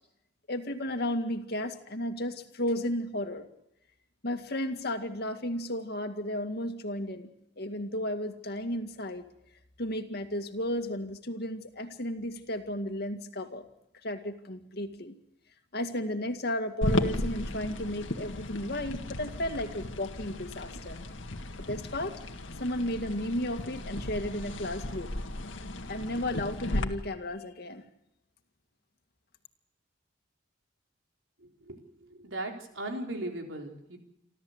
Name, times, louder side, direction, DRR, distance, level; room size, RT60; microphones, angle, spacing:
voice 1, 0.5-3.5 4.2-9.2 9.8-13.7 14.0-15.2 15.7-21.0 21.6-22.2 22.6-25.1 25.9-27.8, left 1 dB, 55° left, 6 dB, 2.1 m, -34 dB
sound 1, 16.8-26.8, left 1 dB, 80° left, 1.9 m, -35 dB
voice 2, 31.4-34.0, right 1 dB, 85° right, 2 dB, 4.2 m, -38 dB
28.5 x 13.0 x 8.1 m, 0.83 s
head